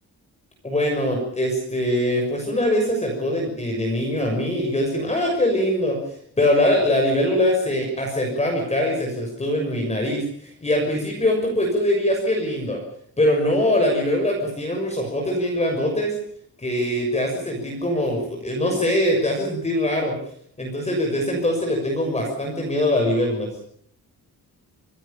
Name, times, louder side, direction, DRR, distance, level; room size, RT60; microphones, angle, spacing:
voice 1, 0.6-6.0 6.4-12.8 13.2-16.1 16.6-20.1 20.6-23.5, left 1 dB, 20° left, 1 dB, 6.5 m, -22 dB
27.5 x 18.5 x 7.2 m, 0.63 s
wide cardioid pair, 160°, 37 cm